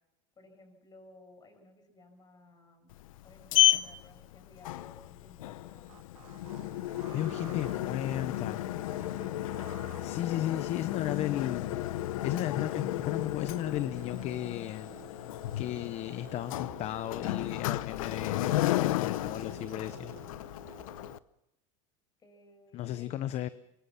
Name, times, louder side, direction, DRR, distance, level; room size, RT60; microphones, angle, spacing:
voice 1, 0.4-2.9 3.2-6.0 22.2-23.5, left 2 dB, 25° left, 6 dB, 6.5 m, -57 dB
Sliding door, 2.9-21.2, left 14 dB, 80° left, 0.9 m, -33 dB
sound 1, 5.9-21.2, right 12 dB, 90° right, 1.0 m, -52 dB
voice 2, 7.1-8.6 10.0-11.8 12.2-14.9 15.6-20.1 22.7-23.5, left 13 dB, 40° left, 14 dB, 0.8 m, -35 dB
23.5 x 23.0 x 5.9 m, 0.90 s
supercardioid pair, 125°, 17 cm